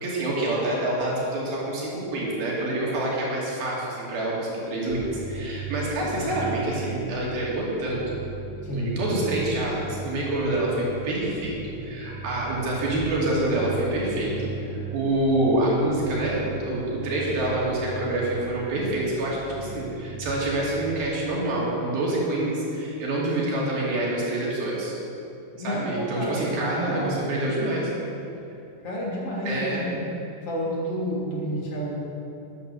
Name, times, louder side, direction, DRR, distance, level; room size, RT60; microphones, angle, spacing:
voice 1, 0.0-8.0 8.7-24.9 25.6-27.9 29.5-29.8, right 1 dB, 65° right, -4 dB, 4.3 m, -27 dB
sound 1, 4.9-20.9, right 3 dB, 40° right, 4.0 m, -37 dB
voice 2, 8.6-8.9 25.6-27.4 28.8-30.1 30.4-32.0, equal, 35° left, -5 dB, 3.5 m, -30 dB
13.5 x 10.5 x 6.8 m, 2.9 s
omnidirectional pair, 4.8 m